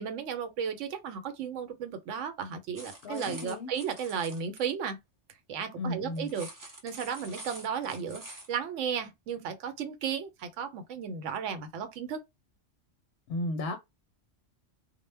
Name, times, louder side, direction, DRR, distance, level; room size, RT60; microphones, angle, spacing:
voice 1, 0.0-5.0 5.5-6.5 6.8-12.2, right 7 dB, 80° right, 0.9 m, -34 dB
sound 1, 2.7-4.6 6.2-8.5, right 1 dB, 30° right, 0.4 m, -47 dB
voice 2, 3.0-3.7 5.7-6.3 13.3-13.8, left 2 dB, 65° left, 0.8 m, -34 dB
2.1 x 2.0 x 3.2 m
omnidirectional pair, 1.2 m